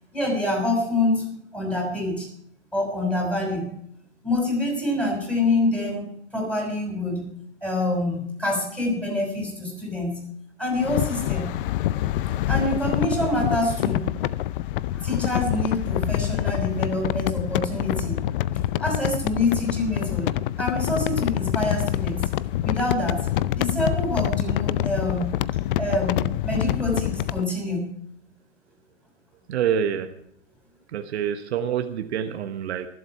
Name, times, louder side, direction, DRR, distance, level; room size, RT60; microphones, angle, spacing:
voice 1, 0.1-2.3 2.7-3.7 4.2-7.3 7.6-10.2 10.6-11.5 12.5-14.1 14.9-18.2 18.8-20.3 20.6-22.3 22.6-23.3 23.6-25.3 25.8-27.9, left 2 dB, 5° left, -1 dB, 6.1 m, -26 dB
sound 1, 10.8-27.4, left 13 dB, 50° left, 0.5 m, -26 dB
voice 2, 29.5-30.2 30.9-32.9, right 8 dB, 65° right, 7 dB, 1.2 m, -26 dB
23.5 x 7.9 x 4.6 m, 0.72 s
hypercardioid pair, 120°, 36 cm